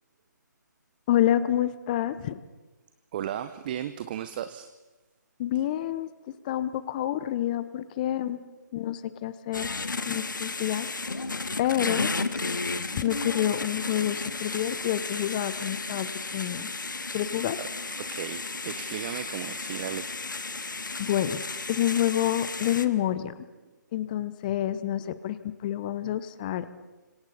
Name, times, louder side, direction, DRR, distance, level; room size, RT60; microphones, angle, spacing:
voice 1, 1.1-2.4 5.4-6.1 6.4-8.4 8.7-9.7 10.0-10.9 11.6-12.1 13.0-16.7 17.1-17.6 21.0-21.4 21.7-23.5 23.9-26.7, left 12 dB, 25° left, 14 dB, 0.9 m, -28 dB
voice 2, 3.1-4.7 17.5-17.7 18.0-20.2, right 10 dB, 30° right, 11 dB, 0.8 m, -35 dB
sound 1, 9.5-22.8, left 3 dB, 75° left, 1.6 m, -33 dB
29.5 x 26.0 x 4.2 m, 1.1 s
figure-of-eight pair, 150°, 10 cm